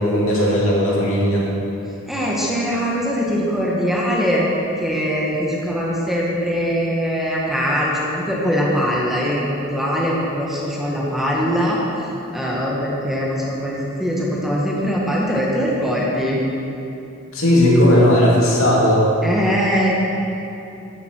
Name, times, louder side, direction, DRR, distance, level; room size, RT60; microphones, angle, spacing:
voice 1, 0.0-1.5 17.3-19.1, left 1 dB, 70° left, -4 dB, 2.7 m, -16 dB
voice 2, 2.1-4.5 4.8-11.8 12.3-16.4 19.2-20.0, equal, ahead, -5 dB, 1.6 m, -21 dB
12.0 x 10.5 x 4.7 m, 2.8 s
head